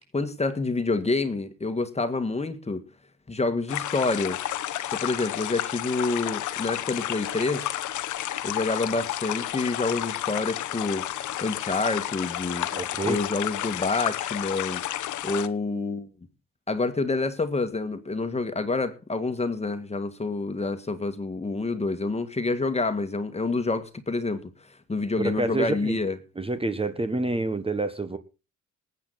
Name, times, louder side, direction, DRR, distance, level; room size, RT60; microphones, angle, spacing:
voice 1, 0.1-2.8 3.3-4.4 4.9-7.7 8.4-11.0 11.4-12.7 13.0-14.8 15.2-16.1 16.7-24.5 24.9-26.2, left 3 dB, 20° left, 1.8 m, -28 dB
sound 1, 3.7-15.5, left 13 dB, 80° left, 1.0 m, -31 dB
voice 2, 12.7-13.2 25.2-26.0 26.4-28.2, right 2 dB, 20° right, 1.4 m, -28 dB
19.5 x 8.5 x 4.1 m
cardioid pair, 90°, 30 cm